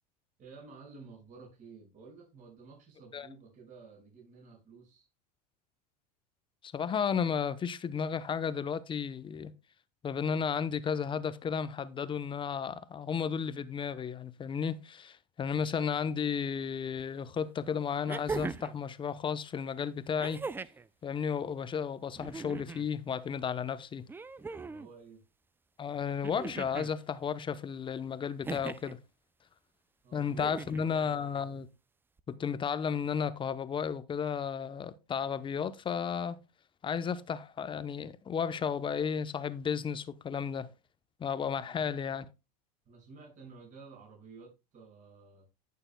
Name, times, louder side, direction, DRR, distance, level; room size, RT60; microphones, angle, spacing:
voice 1, 0.4-5.1 24.6-25.2 30.0-31.2 41.7-42.0 42.8-45.5, right 4 dB, 40° right, 6.0 m, -53 dB
voice 2, 6.6-9.5 10.0-20.4 21.0-24.1 25.8-29.0 30.1-31.7 32.3-36.4 36.8-40.7 41.2-42.3, left 7 dB, 25° left, 0.8 m, -33 dB
sound 1, 17.0-17.1 18.1-18.8 20.2-20.9 22.1-22.9 24.1-24.9 26.2-26.9 28.4-29.0 30.3-30.9 32.2-32.3, right 4 dB, 10° right, 0.4 m, -39 dB
17.5 x 6.8 x 2.2 m
supercardioid pair, 105°, 21 cm